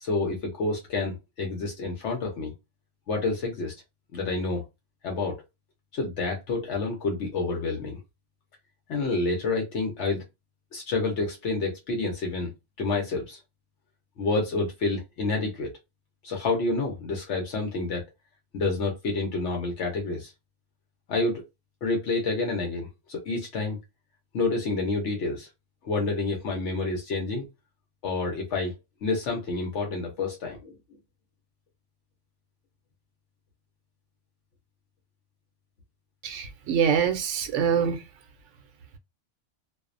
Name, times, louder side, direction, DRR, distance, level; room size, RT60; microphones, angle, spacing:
voice 1, 0.0-2.5 3.1-3.7 4.1-4.6 5.0-5.4 5.9-8.0 8.9-10.2 10.7-12.5 12.8-13.4 14.2-15.7 16.2-18.0 18.5-20.3 21.1-21.4 21.8-23.8 24.3-25.5 25.8-27.5 28.0-28.7 29.0-30.7, left 3 dB, 75° left, 1.0 m, -28 dB
voice 2, 36.2-38.0, right 7 dB, 80° right, 0.9 m, -25 dB
2.5 x 2.1 x 2.4 m
omnidirectional pair, 1.2 m